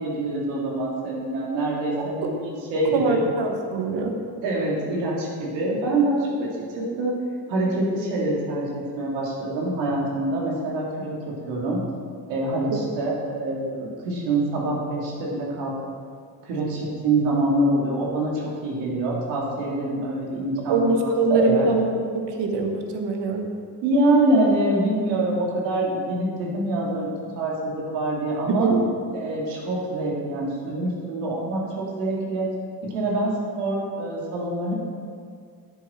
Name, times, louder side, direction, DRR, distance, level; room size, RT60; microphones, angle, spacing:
voice 1, 0.0-3.2 4.4-6.5 6.7-7.2 7.5-11.8 12.3-15.7 16.5-21.7 23.8-28.7 29.1-32.5 32.8-34.7, right 2 dB, 85° right, -3 dB, 2.2 m, -25 dB
voice 2, 2.0-2.3 2.9-4.1 20.7-21.9 22.1-23.5 28.6-28.8, right 3 dB, 65° right, 3 dB, 1.4 m, -23 dB
9.9 x 7.5 x 4.3 m, 2.2 s
supercardioid pair, 60°, 44 cm